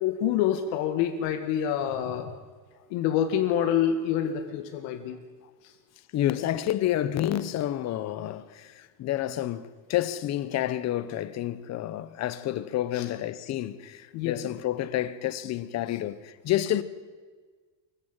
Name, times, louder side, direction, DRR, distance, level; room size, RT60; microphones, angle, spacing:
voice 1, 0.0-2.3 2.9-5.2 12.9-13.0 14.1-14.4, left 9 dB, 65° left, 2.1 m, -27 dB
voice 2, 6.1-16.8, left 13 dB, 35° left, 1.0 m, -29 dB
24.0 x 15.5 x 9.1 m
cardioid pair, 175°, 47 cm